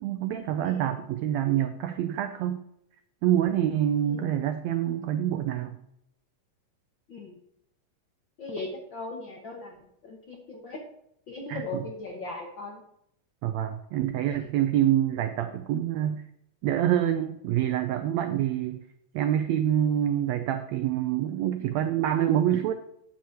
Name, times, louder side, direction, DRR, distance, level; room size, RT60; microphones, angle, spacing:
voice 1, 0.0-2.6 3.2-5.8 11.5-11.6 13.4-16.2 16.6-18.8 19.1-22.7, right 11 dB, 85° right, 8 dB, 1.5 m, -26 dB
voice 2, 0.6-1.0 4.1-4.3 7.1-7.4 8.4-9.8 10.0-10.8 11.3-12.8, left 3 dB, 60° left, -1 dB, 1.2 m, -38 dB
10.0 x 7.4 x 4.5 m, 0.76 s
omnidirectional pair, 3.8 m